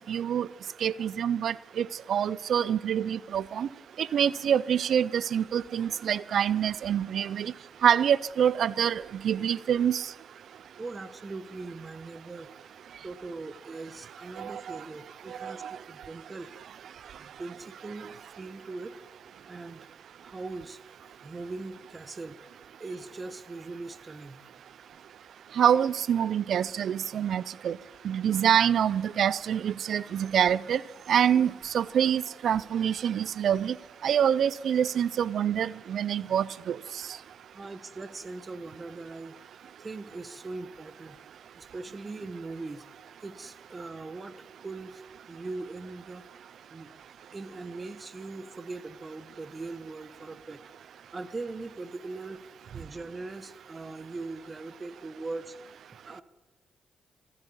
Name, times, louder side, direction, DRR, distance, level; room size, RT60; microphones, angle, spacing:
voice 1, 0.1-0.5 0.8-3.7 4.0-7.5 7.8-10.1 14.4-14.8 15.3-15.8 25.6-27.8 28.0-30.8 31.1-33.8 34.0-36.8, right 9 dB, 70° right, 0.5 m, -26 dB
voice 2, 10.8-12.5 13.0-16.5 17.2-18.9 19.5-19.9 20.2-20.8 21.2-22.4 22.8-24.4 37.5-39.4 39.8-41.2 41.6-42.8 43.2-46.2 46.7-46.9 47.3-50.6 50.9-52.4 52.7-56.2, right 3 dB, 35° right, 1.3 m, -40 dB
14.0 x 11.0 x 8.7 m
supercardioid pair, 55°, 0 cm